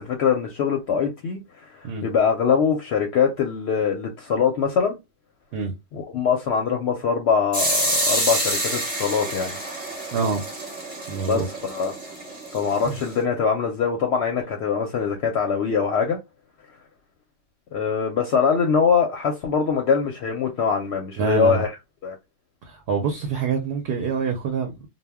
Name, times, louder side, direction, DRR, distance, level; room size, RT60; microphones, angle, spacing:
voice 1, 0.0-1.4 1.7-5.0 5.9-9.6 11.2-11.9 12.5-16.2 17.7-21.7 22.0-22.2, left 6 dB, 65° left, 0.8 m, -23 dB
sound 1, 7.5-13.2, right 1 dB, 10° right, 0.8 m, -28 dB
voice 2, 10.1-10.4 11.1-11.5 12.8-13.0 21.2-21.7 22.6-24.9, right 5 dB, 60° right, 0.7 m, -26 dB
2.1 x 2.1 x 3.4 m
omnidirectional pair, 1.3 m